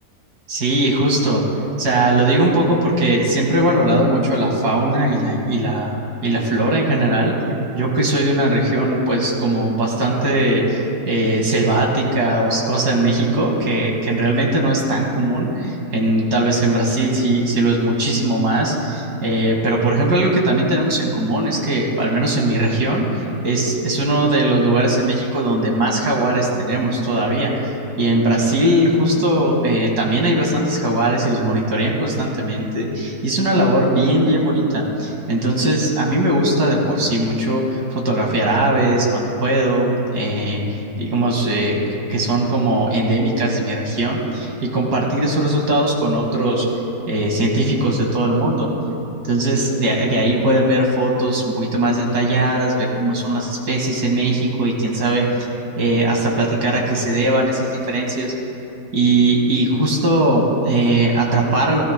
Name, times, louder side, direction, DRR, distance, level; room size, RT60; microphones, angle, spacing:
voice 1, 0.5-1.4 1.8-6.0 6.2-7.3 7.7-23.0 23.4-41.8 42.1-46.7 47.1-48.7 49.2-55.3 55.8-58.3 58.9-61.8, right 1 dB, 70° right, -1 dB, 2.4 m, -19 dB
17.0 x 15.5 x 2.2 m, 2.8 s
omnidirectional pair, 1.7 m